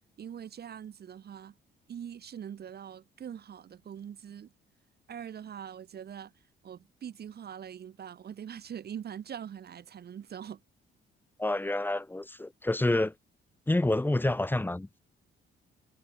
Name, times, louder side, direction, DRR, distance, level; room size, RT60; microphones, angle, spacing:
voice 1, 0.2-1.5 1.9-4.5 5.1-6.3 6.6-10.6, right 9 dB, 55° right, 1.5 m, -43 dB
voice 2, 11.4-13.1 13.7-15.0, left 2 dB, 10° left, 1.1 m, -28 dB
cardioid pair, 90°, 20 cm